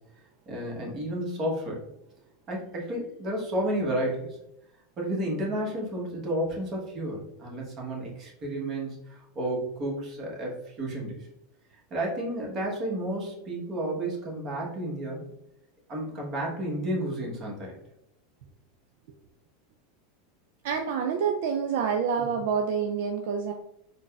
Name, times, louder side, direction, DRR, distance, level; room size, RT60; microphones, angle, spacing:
voice 1, 0.5-1.8 2.5-4.4 5.0-11.3 11.9-15.2 15.9-17.7 22.2-22.3, right 1 dB, 35° right, -2 dB, 1.1 m, -31 dB
voice 2, 20.6-23.5, right 6 dB, 70° right, 4 dB, 0.3 m, -27 dB
3.8 x 2.2 x 2.3 m, 0.82 s
supercardioid pair, 115°, 0 cm